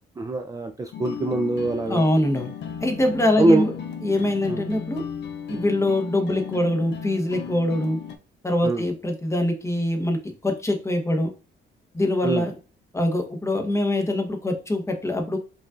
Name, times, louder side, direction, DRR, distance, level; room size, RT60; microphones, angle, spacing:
voice 1, 0.2-2.0 3.4-3.6 4.5-4.6 8.6-8.8 12.2-12.4, right 2 dB, 15° right, 4 dB, 0.4 m, -23 dB
sound 1, 0.9-8.2, left 7 dB, 65° left, 0.6 m, -35 dB
voice 2, 1.9-2.5 2.8-3.8 4.0-5.0 5.5-8.0 8.4-11.3 11.9-12.5 12.9-15.4, left 1 dB, 15° left, 3 dB, 1.0 m, -23 dB
5.1 x 2.4 x 2.5 m, 0.33 s
cardioid pair, 90°, 20 cm